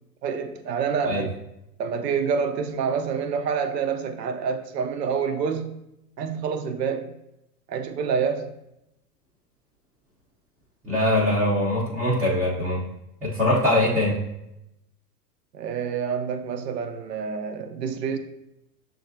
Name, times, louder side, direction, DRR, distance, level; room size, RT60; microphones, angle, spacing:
voice 1, 0.2-1.4 1.8-5.9 6.2-7.1 7.7-8.5 15.5-18.2, right 6 dB, 80° right, 7 dB, 0.6 m, -27 dB
voice 2, 10.8-12.8 13.2-14.2, left 1 dB, 5° right, -10 dB, 0.4 m, -22 dB
6.5 x 2.4 x 2.6 m, 0.86 s
hypercardioid pair, 110°, 48 cm